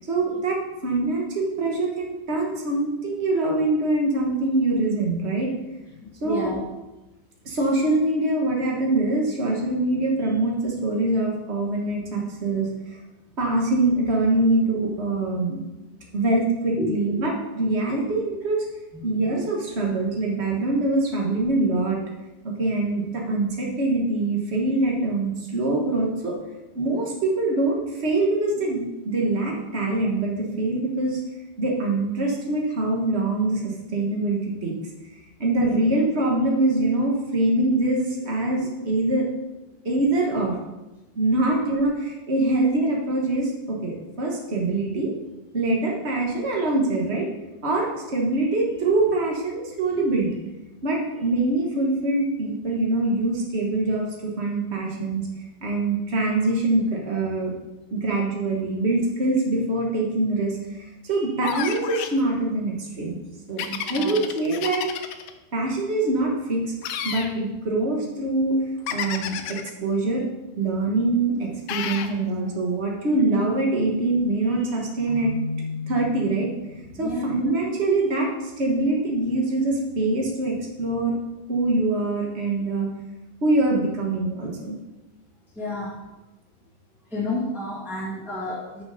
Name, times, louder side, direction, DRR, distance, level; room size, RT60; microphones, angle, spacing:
voice 1, 0.1-5.5 6.2-6.5 7.4-13.0 13.4-15.6 16.1-18.6 19.0-22.0 22.4-26.3 26.7-31.2 31.6-34.8 35.4-39.3 39.8-40.5 41.1-45.1 45.5-47.3 47.6-50.3 50.8-55.2 55.6-57.5 57.9-63.2 63.5-64.9 65.5-66.7 67.0-68.6 68.9-70.2 70.5-75.3 75.9-76.5 77.0-81.1 81.5-82.9 83.4-84.8, right 2 dB, 75° right, -2 dB, 0.6 m, -24 dB
voice 2, 6.0-6.6 16.8-17.3 18.9-19.3 35.6-36.1 45.7-45.8 63.6-64.2 76.9-77.3 85.5-86.0 87.1-88.8, left 2 dB, ahead, -7 dB, 0.7 m, -31 dB
sound 1, 61.4-62.2 63.6-65.3 66.8-67.3 68.9-69.7 71.7-72.1, left 8 dB, 80° left, 1.4 m, -30 dB
Keyboard (musical), 75.1-76.9, left 3 dB, 55° left, 3.1 m, -34 dB
6.9 x 6.6 x 5.2 m, 1.0 s
omnidirectional pair, 3.4 m